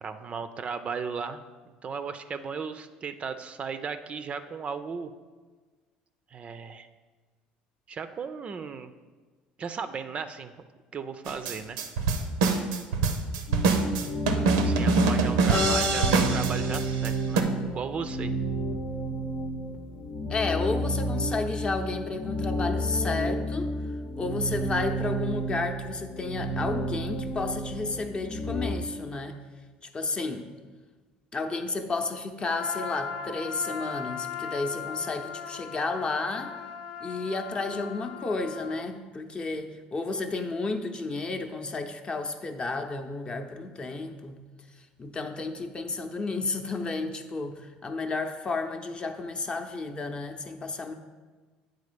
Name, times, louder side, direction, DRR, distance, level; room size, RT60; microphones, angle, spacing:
voice 1, 0.0-1.4 1.8-5.1 6.3-6.9 7.9-8.9 9.6-10.5 10.9-11.8 14.5-18.3, right 5 dB, 35° right, 10 dB, 0.4 m, -36 dB
sound 1, 11.2-17.1 17.4-17.5, right 4 dB, 90° right, 0.6 m, -24 dB
sound 2, 13.5-28.8, right 1 dB, 65° left, 0.8 m, -31 dB
voice 2, 15.5-16.2 20.3-23.7 24.2-29.4 29.8-30.5 31.3-36.6 37.0-44.4 45.0-50.9, left 3 dB, 30° left, 6 dB, 0.6 m, -32 dB
Trumpet, 32.4-38.9, left 7 dB, 85° left, 0.5 m, -38 dB
8.3 x 3.8 x 5.1 m, 1.4 s
supercardioid pair, 90°, 3 cm